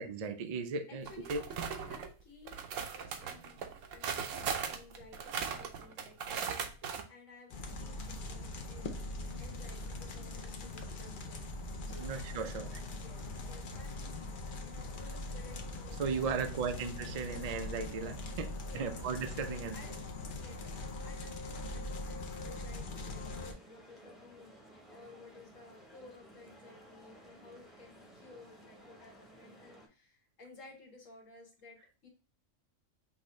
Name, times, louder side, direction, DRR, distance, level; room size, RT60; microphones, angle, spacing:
voice 1, 0.0-1.4 12.0-12.8 16.0-19.8, right 5 dB, 55° right, 0.4 m, -36 dB
voice 2, 0.9-3.6 3.9-12.1 13.0-14.2 14.6-16.7 18.7-18.9 19.4-20.0 20.4-32.1, left 3 dB, 70° left, 1.7 m, -56 dB
sound 1, 1.0-2.1 2.5-7.0, right 6 dB, 70° right, 1.0 m, -38 dB
sound 2, 7.5-23.5, left 2 dB, 50° left, 0.7 m, -42 dB
sound 3, 23.0-29.9, right 1 dB, ahead, 0.8 m, -57 dB
5.8 x 2.7 x 3.1 m
omnidirectional pair, 1.4 m